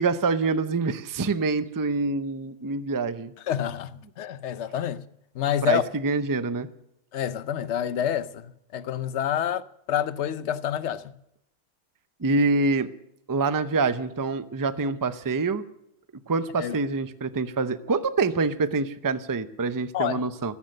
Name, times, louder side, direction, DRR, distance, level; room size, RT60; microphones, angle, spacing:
voice 1, 0.0-3.3 5.6-6.7 12.2-12.9 13.3-15.6 16.3-20.5, right 3 dB, 25° right, 0.5 m, -26 dB
voice 2, 3.5-3.9 4.2-5.0 5.3-5.8 7.1-9.6 9.9-11.1 16.6-16.7 19.9-20.2, left 9 dB, 60° left, 1.0 m, -27 dB
15.0 x 14.5 x 6.5 m
omnidirectional pair, 1.4 m